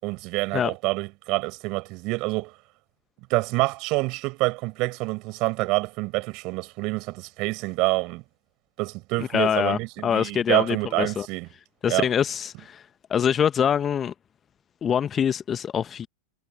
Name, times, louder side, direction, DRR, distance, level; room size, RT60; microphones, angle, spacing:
voice 1, 0.0-2.5 3.3-8.2 8.8-11.5 11.9-12.1, right 24 dB, 40° right, 7.5 m, -27 dB
voice 2, 9.2-11.3 11.8-12.8 13.1-14.1 14.8-16.1, left 8 dB, 25° left, 1.4 m, -24 dB
figure-of-eight pair, 90°, 0 cm